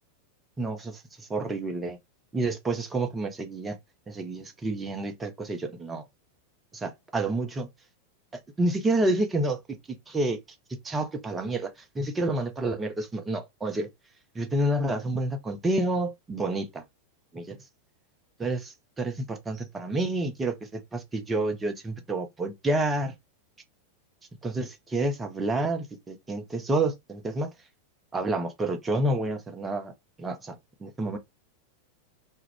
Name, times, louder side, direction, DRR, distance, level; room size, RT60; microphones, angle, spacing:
voice 1, 0.6-2.0 2.3-3.8 4.1-6.0 6.7-7.7 8.6-9.8 10.1-10.4 10.8-13.9 14.3-16.8 17.3-17.6 18.4-23.1 24.4-27.5 28.1-29.9 30.2-31.2, right 2 dB, 15° right, 0.5 m, -29 dB
2.3 x 2.1 x 3.4 m
figure-of-eight pair, 90°, 0 cm